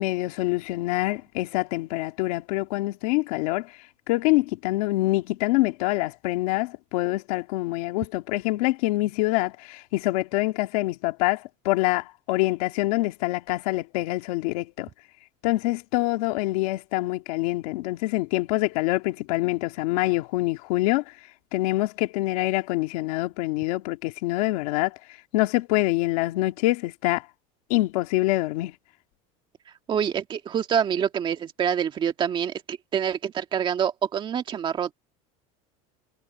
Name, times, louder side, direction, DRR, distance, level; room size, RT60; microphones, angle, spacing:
voice 1, 0.0-3.7 4.1-14.9 15.4-21.0 21.5-25.0 25.3-27.2 27.7-28.7, left 20 dB, 85° left, 1.8 m, -25 dB
voice 2, 29.9-34.9, right 8 dB, 25° right, 1.7 m, -26 dB
cardioid pair, 165°, 18 cm